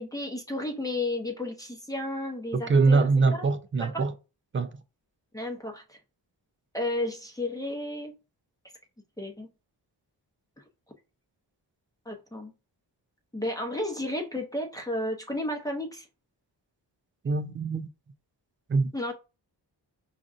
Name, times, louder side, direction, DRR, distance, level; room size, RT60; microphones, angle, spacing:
voice 1, 0.0-3.0 3.3-3.4 3.8-4.0 5.3-6.0 6.7-8.1 9.2-9.5 12.1-12.5 13.3-16.1 18.9-19.1, left 1 dB, 10° left, 0.8 m, -32 dB
voice 2, 2.5-4.1 4.5-4.7 17.2-17.9 18.7-19.1, right 4 dB, 30° right, 0.4 m, -24 dB
5.1 x 2.5 x 2.4 m
cardioid pair, 70°, 43 cm